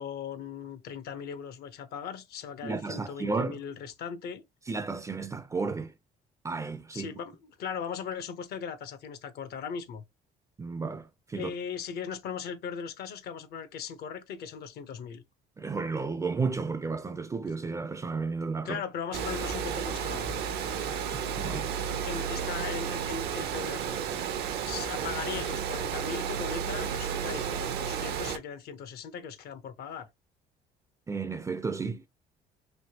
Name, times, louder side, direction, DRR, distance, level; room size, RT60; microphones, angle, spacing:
voice 1, 0.0-4.4 6.9-10.0 11.3-15.2 18.6-20.5 22.0-24.0 24.6-30.1, left 7 dB, 70° left, 0.7 m, -38 dB
voice 2, 2.6-3.6 4.7-5.9 6.4-7.1 10.6-11.5 15.6-18.8 21.1-22.0 31.1-32.0, right 4 dB, 20° right, 0.3 m, -33 dB
Water, 19.1-28.4, right 7 dB, 75° right, 0.6 m, -32 dB
3.2 x 2.8 x 2.8 m
cardioid pair, 110°, 17 cm